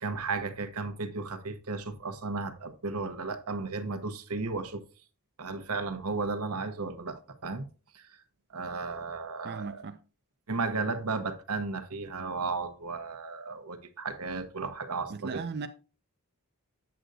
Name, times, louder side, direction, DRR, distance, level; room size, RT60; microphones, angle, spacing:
voice 1, 0.0-4.8 5.4-7.7 7.9-8.2 8.5-9.8 10.5-15.4, right 4 dB, 80° right, 1.0 m, -34 dB
voice 2, 9.4-10.0 15.1-15.7, right 5 dB, 50° right, 0.5 m, -37 dB
7.9 x 7.8 x 2.6 m
head